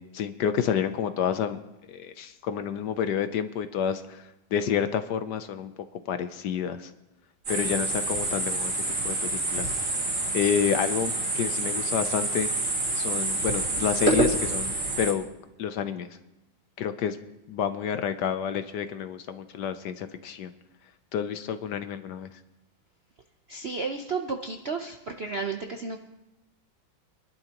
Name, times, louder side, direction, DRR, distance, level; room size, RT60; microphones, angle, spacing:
voice 1, 0.1-1.6 1.9-4.2 4.5-5.7 6.1-6.9 7.5-9.7 10.3-12.5 13.0-15.2 15.6-16.1 16.8-17.2 17.5-20.5 21.1-22.3, left 8 dB, 65° left, 10 dB, 1.2 m, -29 dB
sound 1, 7.4-15.1, right 2 dB, 40° right, 3.1 m, -27 dB
voice 2, 23.5-26.0, right 4 dB, 60° right, 4 dB, 0.6 m, -32 dB
25.5 x 11.5 x 3.0 m, 0.94 s
omnidirectional pair, 2.1 m